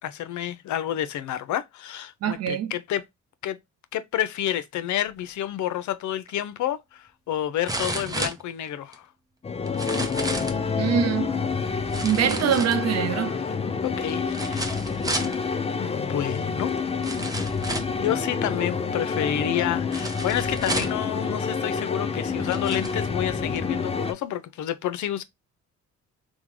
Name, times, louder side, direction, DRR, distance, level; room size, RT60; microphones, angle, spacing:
voice 1, 0.0-3.0 3.4-3.6 3.9-9.1 13.4-13.6 13.8-14.8 15.2-15.5 15.7-16.7 17.6-25.2, left 11 dB, 70° left, 0.6 m, -29 dB
voice 2, 2.2-2.7 10.8-11.4 12.0-13.4, right 9 dB, 55° right, 0.5 m, -24 dB
sound 1, 6.3-6.4 7.7-9.0 9.7-10.6 11.9-13.1 14.3-15.4 16.4-16.5 17.0-18.0 19.9-21.1 21.9-22.0 22.4-23.0 23.6-23.7, right 1 dB, 10° right, 0.7 m, -32 dB
sound 2, 9.4-24.1, left 5 dB, 20° left, 0.5 m, -28 dB
3.5 x 2.2 x 3.0 m
cardioid pair, 90°, 30 cm